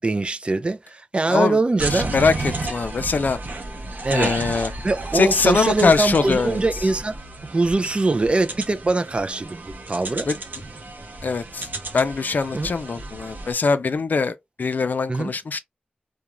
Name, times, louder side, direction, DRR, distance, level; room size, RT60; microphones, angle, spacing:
voice 1, 0.0-2.1 4.0-4.3 4.8-10.3 12.5-12.7 15.1-15.3, right 2 dB, 35° right, 0.3 m, -22 dB
voice 2, 1.3-1.6 1.9-3.4 4.1-4.7 5.1-6.6 10.3-10.4 11.2-11.7 11.9-15.6, left 4 dB, 70° left, 0.3 m, -22 dB
sound 1, 1.8-13.5, right 2 dB, 75° right, 0.7 m, -32 dB
Bird vocalization bird call bird song, 2.2-3.2 5.1-6.7, left 2 dB, 35° left, 0.8 m, -43 dB
2.4 x 2.1 x 2.9 m
wide cardioid pair, 80°, 3 cm